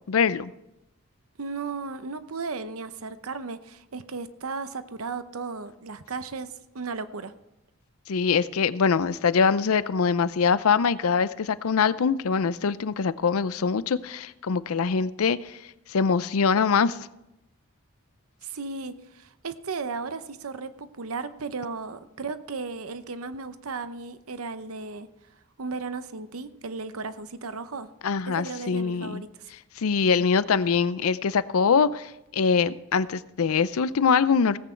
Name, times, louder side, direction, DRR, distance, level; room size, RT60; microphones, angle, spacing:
voice 1, 0.1-0.5 8.1-15.6 15.9-17.0 28.0-29.2 29.8-34.6, left 5 dB, 75° left, 16 dB, 0.5 m, -23 dB
voice 2, 1.4-7.3 18.4-25.1 25.6-27.9 28.3-29.5, right 4 dB, 75° right, 11 dB, 0.8 m, -35 dB
17.5 x 8.5 x 4.5 m, 0.90 s
head